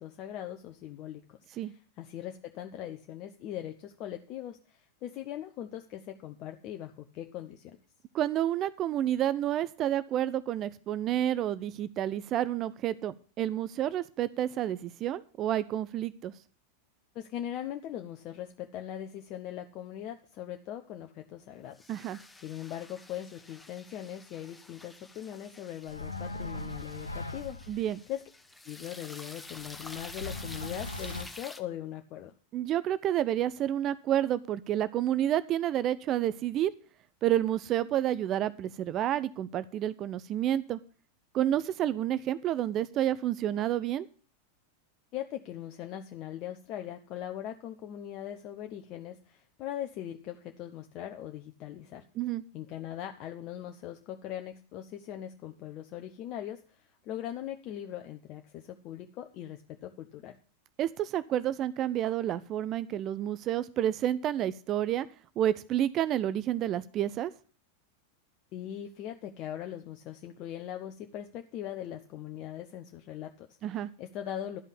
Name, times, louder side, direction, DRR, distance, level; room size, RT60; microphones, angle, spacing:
voice 1, 0.0-7.8 17.1-21.8 22.4-27.8 28.1-28.2 28.7-32.3 45.1-52.1 52.5-60.4 68.5-74.6, left 11 dB, 40° left, 5 dB, 0.8 m, -40 dB
voice 2, 8.1-16.3 21.9-22.2 27.7-28.0 32.5-36.7 37.2-40.8 41.3-44.1 52.2-52.4 60.8-65.1 65.4-67.3 73.6-73.9, right 11 dB, 35° right, 17 dB, 0.5 m, -29 dB
sound 1, 21.7-31.6, left 2 dB, 5° left, 1.0 m, -49 dB
sound 2, 25.8-27.9 29.5-31.2, left 2 dB, 80° left, 0.9 m, -39 dB
12.0 x 5.4 x 8.3 m, 0.39 s
figure-of-eight pair, 90°, 0 cm